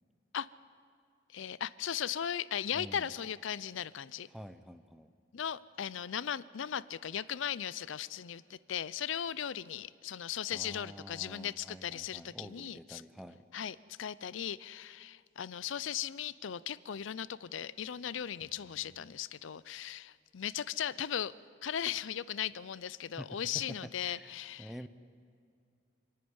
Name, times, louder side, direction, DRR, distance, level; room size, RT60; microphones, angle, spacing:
voice 1, 1.3-4.3 5.3-13.0 13.5-21.3 21.6-24.7, left 9 dB, 80° left, 19 dB, 0.5 m, -37 dB
voice 2, 2.7-3.1 4.3-5.1 10.5-13.4 18.4-19.2 23.2-24.3 24.6-24.9, equal, ahead, 10 dB, 0.6 m, -48 dB
27.0 x 10.5 x 9.6 m, 2.3 s
head